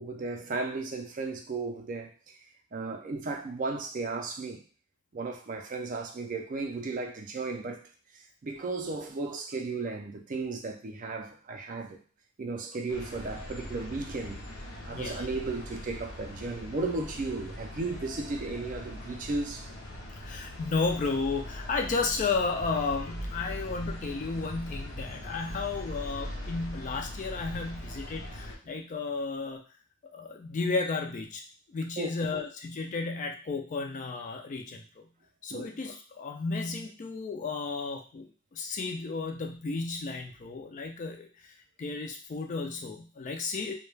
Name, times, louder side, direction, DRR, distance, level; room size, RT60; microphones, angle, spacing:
voice 1, 0.0-2.4 2.7-4.6 5.1-7.8 8.1-12.0 12.4-14.5 14.8-19.7 32.0-32.1 35.5-35.7, right 3 dB, 40° right, 0.4 m, -35 dB
sound 1, 12.9-28.6, left 1 dB, 70° left, 0.6 m, -41 dB
voice 2, 14.9-15.3 20.2-29.6 30.1-31.4 31.7-35.1 35.4-43.7, left 4 dB, 35° left, 0.3 m, -33 dB
2.3 x 2.1 x 3.1 m
head